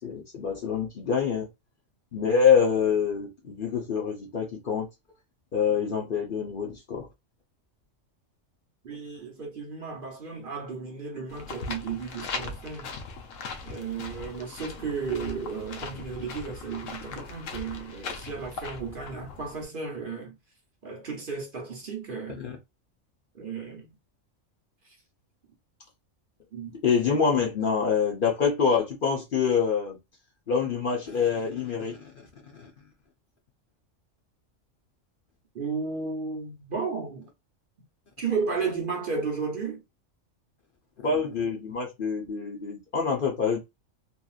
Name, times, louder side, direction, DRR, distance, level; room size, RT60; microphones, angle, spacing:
voice 1, 0.0-1.5 2.1-4.9 5.5-7.1 22.4-22.6 26.7-30.0 30.5-32.1 32.6-32.7 41.0-43.6, left 6 dB, 50° left, 0.8 m, -26 dB
voice 2, 8.8-12.9 13.6-20.3 20.8-22.4 23.3-23.9 24.8-25.0 26.5-26.8 35.5-37.3 38.2-39.8, right 5 dB, 50° right, 0.8 m, -34 dB
sound 1, 11.3-19.6, left 4 dB, 80° left, 1.0 m, -39 dB
2.9 x 2.5 x 2.4 m
omnidirectional pair, 1.3 m